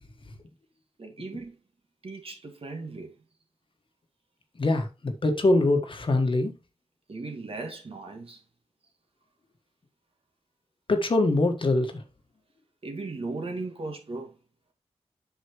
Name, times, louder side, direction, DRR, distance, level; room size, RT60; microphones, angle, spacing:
voice 1, 1.0-1.6 2.0-3.1 7.1-8.4 12.8-14.3, right 3 dB, 55° right, 2.2 m, -37 dB
voice 2, 4.6-6.5 10.9-11.9, left 2 dB, 50° left, 1.6 m, -23 dB
8.1 x 6.3 x 3.1 m
wide cardioid pair, 100°, 12 cm